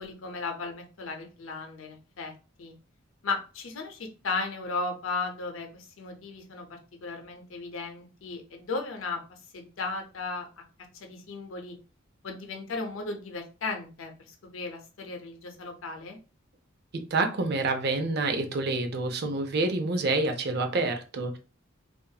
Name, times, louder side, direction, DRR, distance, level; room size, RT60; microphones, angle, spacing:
voice 1, 0.0-2.7 3.2-10.6 10.9-11.8 12.2-16.2, left 3 dB, 75° left, 3 dB, 0.6 m, -36 dB
voice 2, 16.9-21.4, right 3 dB, 55° right, 6 dB, 0.5 m, -28 dB
2.7 x 2.4 x 2.3 m, 0.34 s
head